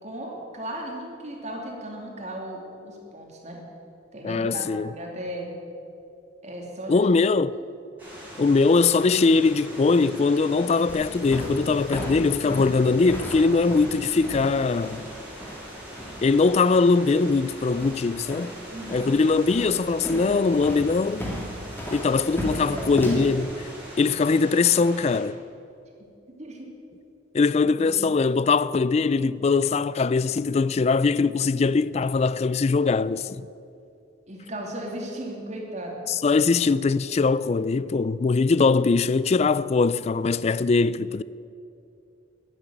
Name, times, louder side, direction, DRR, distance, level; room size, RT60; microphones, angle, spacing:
voice 1, 0.0-3.6 4.1-5.5 6.4-7.1 18.7-19.1 22.4-22.9 26.4-26.7 27.7-28.1 34.3-36.1, right 1 dB, 40° right, 2.6 m, -36 dB
voice 2, 4.2-4.9 6.9-7.6 8.4-15.0 16.2-18.5 18.9-21.3 21.9-23.7 24.0-25.4 27.3-33.5 36.1-41.2, left 4 dB, 35° left, 0.3 m, -21 dB
sound 1, 8.0-25.2, equal, 10° right, 4.3 m, -42 dB
sound 2, 10.9-23.4, equal, 10° left, 2.2 m, -35 dB
11.0 x 10.5 x 9.0 m
head